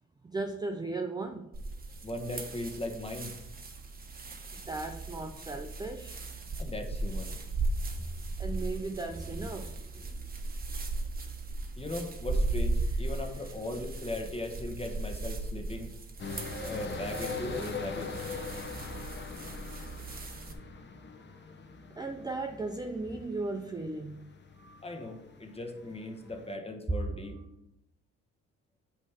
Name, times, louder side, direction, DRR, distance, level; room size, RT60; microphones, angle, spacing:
voice 1, 0.2-1.5 4.5-6.2 7.9-8.1 8.4-10.1 18.9-19.0 21.9-24.3 24.6-24.8 27.0-27.2, right 3 dB, 15° right, 0.5 m, -37 dB
sound 1, 1.5-20.5, right 2 dB, 30° right, 1.2 m, -37 dB
voice 2, 2.0-3.3 6.6-7.3 11.8-15.9 16.6-18.1 24.8-27.3, left 1 dB, 20° left, 1.3 m, -38 dB
sound 2, 16.2-26.5, left 4 dB, 35° left, 1.0 m, -42 dB
8.2 x 3.2 x 5.7 m
cardioid pair, 90°, 30 cm